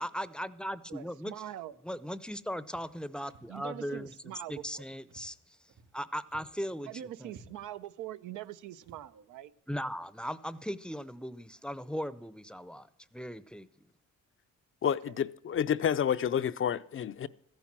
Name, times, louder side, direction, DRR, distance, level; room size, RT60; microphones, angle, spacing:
voice 1, 0.0-1.3 1.8-4.1 4.5-5.6 5.9-7.3 9.7-13.7, equal, 5° left, 0.6 m, -38 dB
voice 2, 0.9-1.7 3.5-4.8 6.9-9.5 14.8-15.2 15.8-16.0, right 12 dB, 85° right, 0.7 m, -43 dB
Walk footsteps, 2.7-3.0 3.3-3.6 3.9-4.2 4.5-4.8 5.1-6.0 6.3-6.6 6.9-7.0 7.3-7.8 8.3-8.5 8.8-9.1, right 4 dB, 65° right, 3.3 m, -57 dB
voice 3, 14.8-17.3, left 8 dB, 45° left, 0.5 m, -29 dB
14.0 x 10.5 x 7.4 m
cardioid pair, 90°, 30 cm